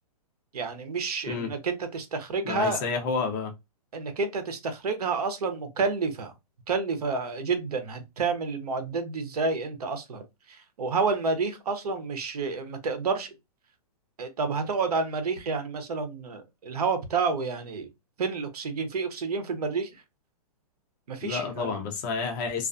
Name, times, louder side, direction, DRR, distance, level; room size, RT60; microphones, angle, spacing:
voice 1, 0.5-2.8 3.9-6.3 6.7-10.2 10.5-13.3 14.2-17.9 18.2-19.9 21.1-21.8, right 4 dB, 90° right, 0.8 m, -29 dB
voice 2, 2.4-3.5 21.2-22.7, left 5 dB, 35° left, 0.6 m, -30 dB
2.3 x 2.3 x 2.4 m
hypercardioid pair, 155°, 19 cm